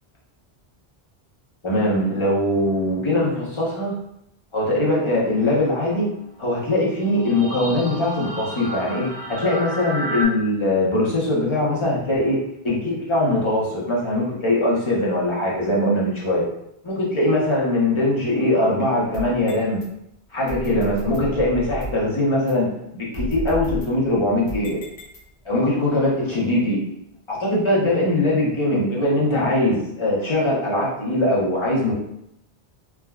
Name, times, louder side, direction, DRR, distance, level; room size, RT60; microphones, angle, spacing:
voice 1, 1.6-4.0 4.5-6.1 6.4-12.4 12.6-16.5 16.8-19.8 20.3-24.8 25.4-26.8 27.3-31.9, left 1 dB, 30° left, -5 dB, 0.7 m, -21 dB
sound 1, 4.9-10.2, right 1 dB, 45° right, 0.6 m, -34 dB
sound 2, 19.1-19.9 20.5-22.1 22.5-22.6 23.1-25.6, left 1 dB, 75° left, 0.9 m, -33 dB
3.4 x 2.1 x 2.2 m, 0.79 s
omnidirectional pair, 1.1 m